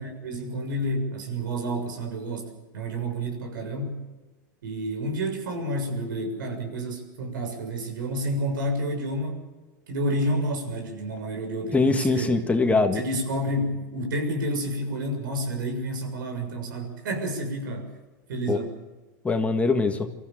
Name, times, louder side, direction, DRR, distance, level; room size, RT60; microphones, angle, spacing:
voice 1, 0.0-4.0 4.6-9.4 9.9-12.4 12.9-17.9 18.3-18.8, right 1 dB, 80° right, 4 dB, 6.9 m, -30 dB
voice 2, 11.7-13.0 18.5-18.6 19.2-20.0, left 3 dB, 15° left, 5 dB, 1.8 m, -22 dB
25.0 x 15.0 x 7.6 m, 1.2 s
supercardioid pair, 125°, 11 cm